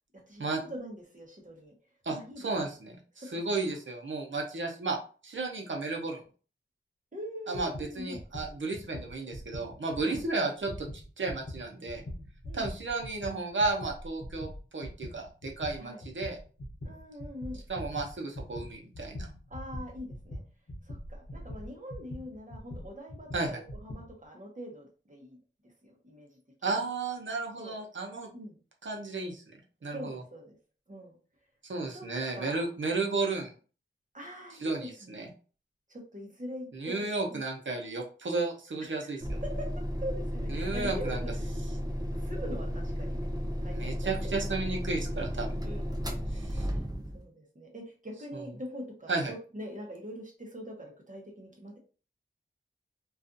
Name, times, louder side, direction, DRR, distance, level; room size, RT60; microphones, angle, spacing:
voice 1, 0.3-1.7 2.1-2.5 3.1-3.3 3.6-3.8 7.1-8.2 10.0-10.2 12.4-12.7 15.8-16.0 16.8-17.6 19.5-20.4 20.8-26.4 27.6-27.8 28.3-28.6 29.9-30.6 30.9-31.2 31.9-32.1 32.3-32.7 34.1-35.3 35.9-37.0 37.3-37.4 38.8-39.7 40.0-41.5 42.1-43.3 43.6-44.4 45.6-46.0 46.3-46.8 47.1-51.8, equal, 40° right, 0 dB, 0.9 m, -43 dB
voice 2, 2.0-3.0 3.3-5.0 5.2-6.2 7.5-10.9 11.2-12.0 12.5-16.4 17.7-19.3 23.3-23.6 26.6-28.3 28.8-29.4 29.8-30.2 31.7-33.5 34.6-35.3 36.7-39.4 40.5-41.2 43.7-45.6 46.3-46.7 49.1-49.3, right 3 dB, 65° right, 1 dB, 0.7 m, -33 dB
sound 1, 7.5-10.3 10.6-24.1, left 1 dB, 55° left, 0.7 m, -42 dB
sound 2, 39.2-47.2, equal, 20° right, 0.6 m, -34 dB
2.4 x 2.4 x 2.5 m, 0.37 s
wide cardioid pair, 50°, 21 cm